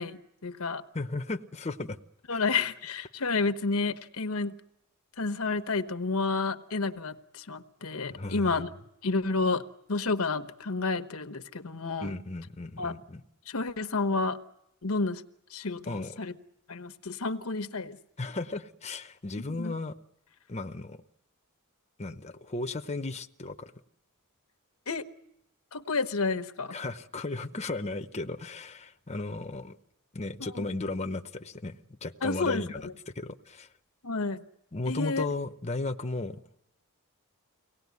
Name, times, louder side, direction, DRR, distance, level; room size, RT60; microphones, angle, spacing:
voice 1, 0.0-0.8 2.3-4.5 5.2-8.7 9.0-9.6 9.9-12.1 12.8-12.9 13.5-14.4 14.8-15.2 15.5-16.3 16.7-18.0 19.6-19.7 24.9-25.1 25.7-26.8 30.4-30.7 32.2-32.9 34.0-34.4 34.9-35.3, left 3 dB, 80° left, 10 dB, 1.1 m, -30 dB
voice 2, 0.9-2.0 2.3-2.4 8.1-8.6 12.0-13.2 15.9-16.1 18.2-20.0 20.5-21.0 22.0-23.7 26.7-29.8 30.1-33.7 34.7-36.4, left 2 dB, 30° left, 7 dB, 0.9 m, -35 dB
24.5 x 18.5 x 9.5 m, 0.87 s
head